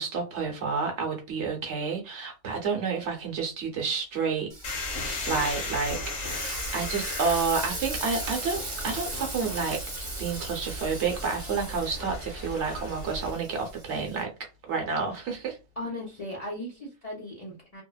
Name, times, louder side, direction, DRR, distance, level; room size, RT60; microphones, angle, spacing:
voice 1, 0.0-4.5 5.0-9.8 10.2-14.3 14.7-15.6, right 5 dB, 65° right, 0.9 m, -30 dB
Frying (food), 4.5-14.2, right 2 dB, 30° right, 0.7 m, -39 dB
sound 1, 4.6-13.3, left 2 dB, 80° left, 1.3 m, -36 dB
voice 2, 15.8-17.8, left 1 dB, 45° left, 0.5 m, -37 dB
2.7 x 2.1 x 2.2 m
omnidirectional pair, 1.3 m